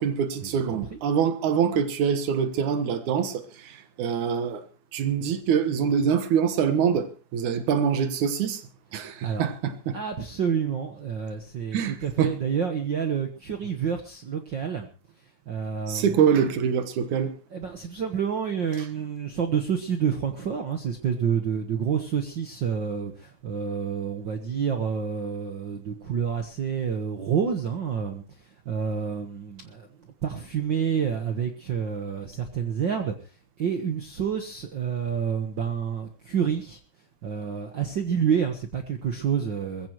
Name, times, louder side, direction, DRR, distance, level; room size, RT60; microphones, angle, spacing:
voice 1, 0.0-4.6 4.9-8.7 8.9-10.0 11.7-12.3 15.9-17.3, right 7 dB, 75° right, 2.8 m, -25 dB
voice 2, 9.9-14.9 15.5-16.2 17.5-29.9 30.2-33.1 33.6-36.8 37.2-39.9, right 7 dB, 55° right, 1.4 m, -28 dB
21.5 x 15.5 x 3.1 m
omnidirectional pair, 3.5 m